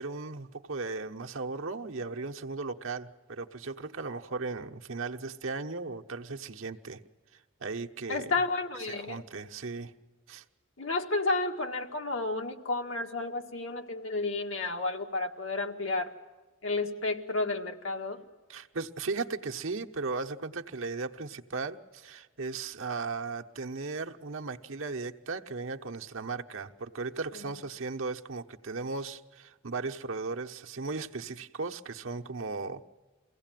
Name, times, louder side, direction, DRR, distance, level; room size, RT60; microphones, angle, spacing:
voice 1, 0.0-7.0 7.6-8.3 8.9-9.9 10.3-10.4 18.5-32.8, right 4 dB, 85° right, 4 dB, 1.1 m, -36 dB
voice 2, 8.1-9.2 10.8-16.1 16.6-18.2 27.3-27.4, left 3 dB, 80° left, 3 dB, 1.9 m, -31 dB
23.5 x 16.5 x 9.1 m, 1.3 s
head